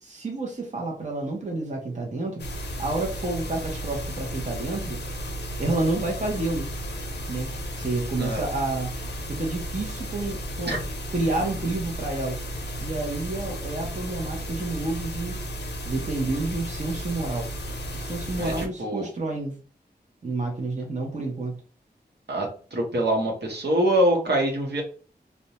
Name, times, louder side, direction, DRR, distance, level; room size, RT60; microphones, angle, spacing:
voice 1, 0.0-2.5 2.8-5.0 5.6-6.7 7.3-8.9 9.3-10.7 11.1-12.4 12.8-15.4 15.8-17.6 17.9-19.6 20.2-21.6, right 2 dB, 45° right, 0 dB, 0.7 m, -29 dB
sound 1, 2.4-18.7, equal, 85° left, 0.5 m, -34 dB
voice 2, 18.4-19.1 22.3-24.8, right 1 dB, 75° right, -1 dB, 0.8 m, -24 dB
2.5 x 2.1 x 2.8 m, 0.37 s
wide cardioid pair, 75°, 17 cm